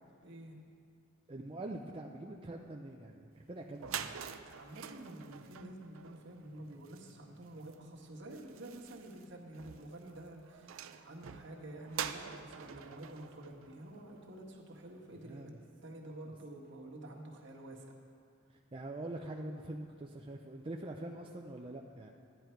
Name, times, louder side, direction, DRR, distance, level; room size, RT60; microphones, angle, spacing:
voice 1, 0.2-0.5 4.5-15.5 15.8-17.9, right 1 dB, 60° right, -1 dB, 1.6 m, -49 dB
voice 2, 1.3-4.1 15.3-15.5 18.7-22.1, right 1 dB, 25° right, 0 dB, 0.5 m, -44 dB
sound 1, 3.4-3.5 3.7-14.5, right 8 dB, 80° right, 0.5 m, -46 dB
12.5 x 10.5 x 4.6 m, 2.4 s
head